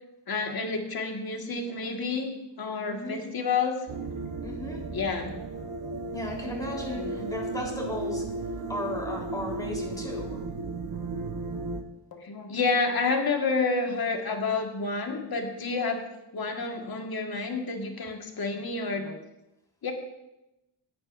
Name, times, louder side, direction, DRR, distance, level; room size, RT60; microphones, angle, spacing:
voice 1, 0.3-2.3 2.6-3.9 4.9-5.4 6.9-7.3 12.1-16.1 16.3-19.2 19.8-19.9, left 4 dB, 55° left, 2 dB, 1.8 m, -29 dB
voice 2, 2.9-3.2 4.4-4.9 6.1-8.3 8.7-10.4, left 1 dB, 10° left, -2 dB, 3.8 m, -35 dB
sound 1, 3.9-11.8, right 3 dB, 55° right, 1.1 m, -35 dB
18.0 x 9.5 x 2.6 m, 0.93 s
wide cardioid pair, 115°, 43 cm